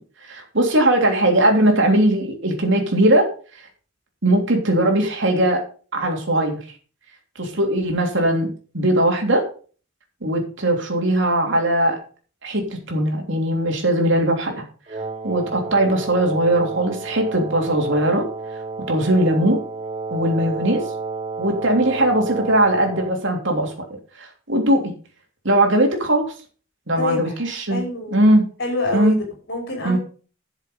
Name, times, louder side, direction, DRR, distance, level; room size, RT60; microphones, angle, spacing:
voice 1, 0.2-3.2 4.2-5.6 5.9-6.6 7.3-8.5 8.7-9.4 10.2-12.0 12.4-14.6 14.9-15.0 15.2-18.2 18.9-19.6 20.1-20.8 21.4-23.9 24.2-24.9 25.4-26.2 26.9-27.8 28.1-28.4 28.9-29.2 29.8-30.0, right 1 dB, 60° right, 2 dB, 3.3 m, -19 dB
Wind instrument woodwind instrument, 14.9-23.2, right 4 dB, 30° right, 1.0 m, -31 dB
voice 2, 27.0-27.4 27.7-28.2 28.6-29.2 29.5-30.0, left 2 dB, 55° left, 0 dB, 5.6 m, -26 dB
11.5 x 7.3 x 5.4 m, 0.39 s
head